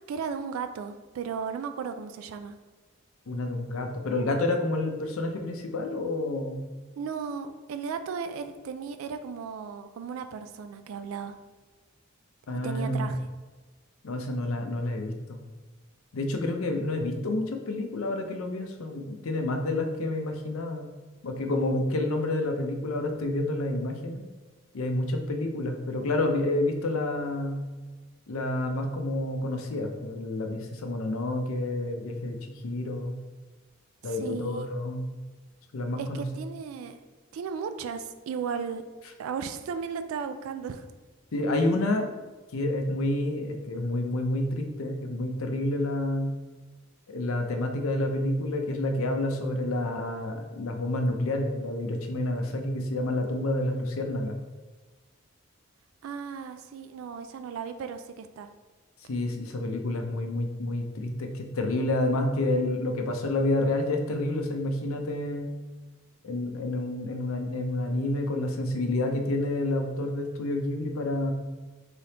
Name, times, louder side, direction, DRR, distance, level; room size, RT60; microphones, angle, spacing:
voice 1, 0.1-2.5 7.0-11.4 12.6-13.3 34.0-34.7 36.0-37.0 37.3-38.8 39.2-40.9 56.0-58.5, right 6 dB, 80° right, 9 dB, 0.3 m, -35 dB
voice 2, 3.3-6.6 12.5-13.2 14.0-15.4 16.1-20.9 21.2-24.2 24.7-27.7 28.3-32.4 32.6-33.2 34.0-35.1 35.7-36.2 41.3-42.1 42.5-46.3 47.1-54.4 59.1-65.5 66.2-71.3, left 1 dB, 85° left, 4 dB, 0.5 m, -29 dB
3.9 x 3.3 x 2.8 m, 1.3 s
head